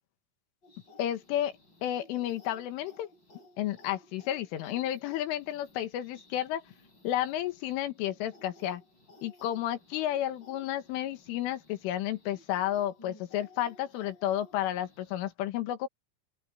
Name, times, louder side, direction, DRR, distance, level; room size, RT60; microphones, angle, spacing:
sound 1, 0.6-15.3, left 1 dB, 25° left, 4.4 m, -57 dB
voice 1, 1.0-1.6 1.8-3.1 3.6-6.6 7.0-8.8 9.2-15.9, left 12 dB, 90° left, 4.2 m, -32 dB
open air
omnidirectional pair, 5.5 m